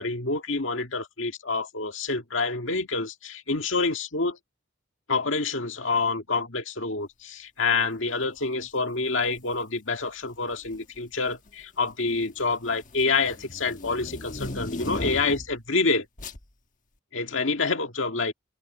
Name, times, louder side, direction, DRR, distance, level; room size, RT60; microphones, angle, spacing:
voice 1, 0.0-4.4 5.1-16.1 17.1-18.3, left 3 dB, 65° left, 2.0 m, -27 dB
sound 1, 9.3-9.5 10.5-11.0 11.3-15.6 16.2-16.4, left 1 dB, 40° left, 1.4 m, -37 dB
head